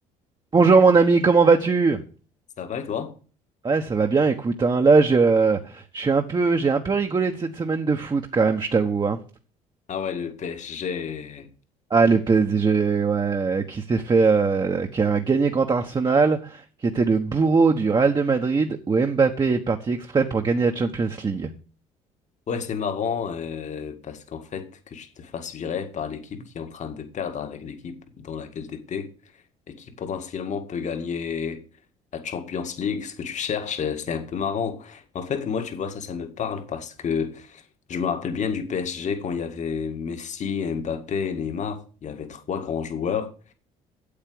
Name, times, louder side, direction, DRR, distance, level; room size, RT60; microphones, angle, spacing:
voice 1, 0.5-2.0 3.6-9.2 11.9-21.5, right 4 dB, 30° right, 1.4 m, -20 dB
voice 2, 2.6-3.1 9.9-11.5 22.5-29.1 29.7-31.6 32.1-37.6 37.9-43.5, left 6 dB, 50° left, 2.0 m, -30 dB
8.7 x 8.1 x 7.9 m
supercardioid pair, 75°, 16 cm